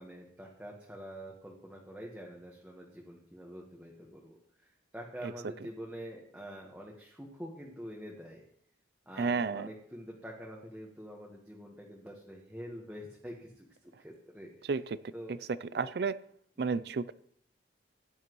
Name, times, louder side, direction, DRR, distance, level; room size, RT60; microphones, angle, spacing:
voice 1, 0.0-8.4 9.0-14.7 15.1-15.3 15.7-15.9 16.7-16.8, equal, 5° right, -2 dB, 1.3 m, -46 dB
voice 2, 9.2-9.7 14.7-15.0 15.3-15.4 15.7-16.2 16.6-17.1, right 4 dB, 60° right, 17 dB, 0.4 m, -31 dB
16.0 x 10.0 x 3.1 m, 0.68 s
head